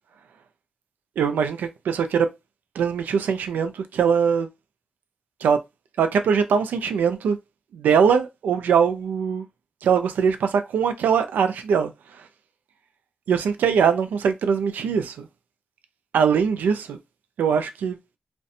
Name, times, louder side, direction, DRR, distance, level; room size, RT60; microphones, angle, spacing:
voice 1, 1.2-2.3 2.8-4.5 5.4-5.6 6.0-7.4 7.7-9.4 9.8-11.9 13.3-15.3 16.1-17.0 17.4-18.0, right 6 dB, 85° right, 0.4 m, -21 dB
2.5 x 2.2 x 2.6 m
cardioid pair, 50°, 3 cm